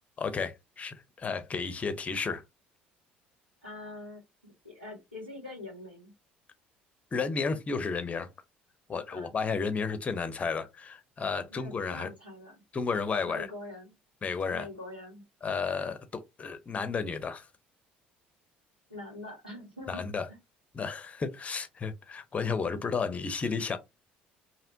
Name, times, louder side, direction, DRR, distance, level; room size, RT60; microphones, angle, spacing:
voice 1, 0.2-2.4 7.1-8.3 8.9-12.1 12.7-13.5 14.2-14.7 15.4-17.5 19.9-20.3 20.7-23.8, left 5 dB, 25° left, 0.5 m, -32 dB
voice 2, 3.6-6.1 9.1-9.3 11.5-12.6 13.2-13.9 14.5-15.2 18.9-20.0 20.3-20.4, left 2 dB, 90° right, 1.5 m, -44 dB
2.7 x 2.1 x 2.6 m
figure-of-eight pair, 55°, 5 cm